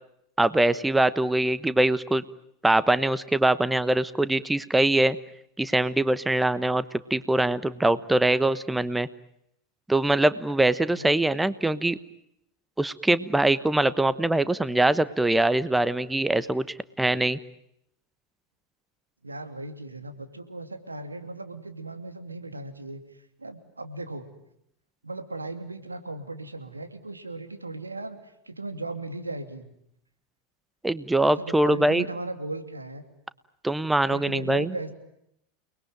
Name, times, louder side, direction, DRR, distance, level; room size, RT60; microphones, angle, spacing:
voice 1, 0.4-2.2 2.6-5.2 5.6-6.8 7.1-9.1 9.9-12.0 12.8-17.4 30.8-32.0 33.6-34.7, right 1 dB, 5° right, 16 dB, 1.1 m, -23 dB
voice 2, 19.2-23.0 23.4-24.3 25.0-28.2 28.5-29.7 31.4-33.0 34.1-34.9, right 2 dB, 90° right, 7 dB, 2.8 m, -37 dB
30.0 x 21.0 x 9.2 m, 0.78 s
figure-of-eight pair, 85°, 0 cm